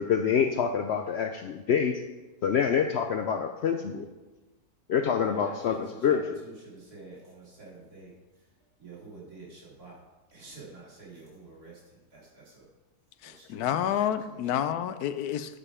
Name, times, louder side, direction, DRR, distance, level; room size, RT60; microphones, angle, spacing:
voice 1, 0.0-2.0 2.4-4.1 4.9-5.8 6.0-6.2, left 7 dB, 70° left, 6 dB, 0.6 m, -26 dB
voice 2, 5.2-8.5 8.8-10.0 10.3-12.7 13.2-14.4, right 3 dB, 80° right, -5 dB, 3.2 m, -48 dB
voice 3, 13.2-15.6, left 10 dB, 85° left, 12 dB, 1.1 m, -29 dB
9.8 x 5.1 x 4.8 m, 1.2 s
omnidirectional pair, 1.6 m